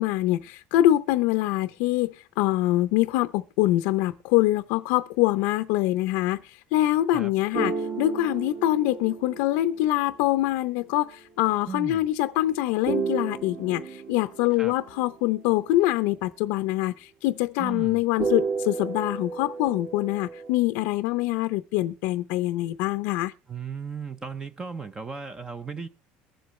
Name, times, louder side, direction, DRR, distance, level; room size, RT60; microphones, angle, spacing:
voice 1, 0.0-23.3, left 15 dB, 75° left, 0.6 m, -24 dB
sound 1, 7.5-10.4 12.9-15.1 18.2-20.5, right 5 dB, 50° right, 2.1 m, -32 dB
voice 2, 11.7-12.1 14.6-14.8 17.6-18.0 23.5-25.9, right 5 dB, 20° right, 0.7 m, -36 dB
22.5 x 7.8 x 3.2 m
cardioid pair, 155°, 4 cm